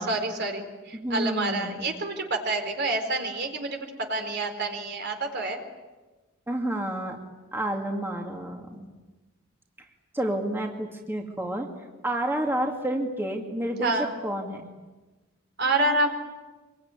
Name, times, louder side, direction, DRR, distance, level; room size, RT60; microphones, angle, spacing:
voice 1, 0.0-5.6 13.8-14.1 15.6-16.1, right 2 dB, 55° right, 4 dB, 4.3 m, -28 dB
voice 2, 0.9-1.9 6.5-7.2 7.5-8.9 10.1-11.7 12.0-14.7, right 1 dB, 10° right, 1 dB, 2.4 m, -30 dB
26.0 x 23.5 x 9.8 m, 1.2 s
head